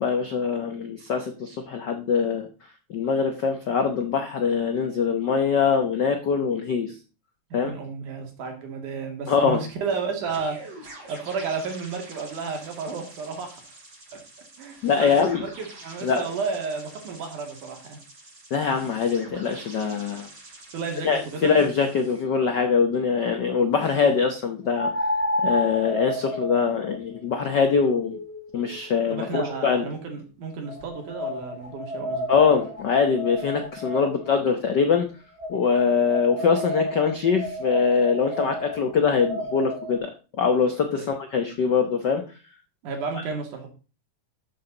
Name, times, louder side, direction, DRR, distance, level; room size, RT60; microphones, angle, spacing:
voice 1, 0.0-2.5 2.9-6.9 7.5-7.7 9.3-9.6 14.8-15.4 16.0-16.2 18.5-20.3 21.0-24.9 25.4-28.2 28.5-29.8 32.3-35.1 35.5-40.1 40.4-42.2, left 6 dB, 80° left, 6 dB, 0.9 m, -23 dB
voice 2, 7.5-13.8 14.1-14.2 14.6-18.0 20.7-21.5 29.1-32.4 41.0-41.1 42.8-43.7, right 5 dB, 90° right, 3 dB, 3.8 m, -32 dB
sound 1, 10.3-22.2, right 2 dB, 55° right, 5.9 m, -46 dB
sound 2, 22.2-22.3 24.7-29.9 30.7-34.4 35.4-40.0, left 1 dB, 15° right, 1.8 m, -31 dB
12.5 x 7.3 x 4.0 m, 0.34 s
omnidirectional pair, 3.5 m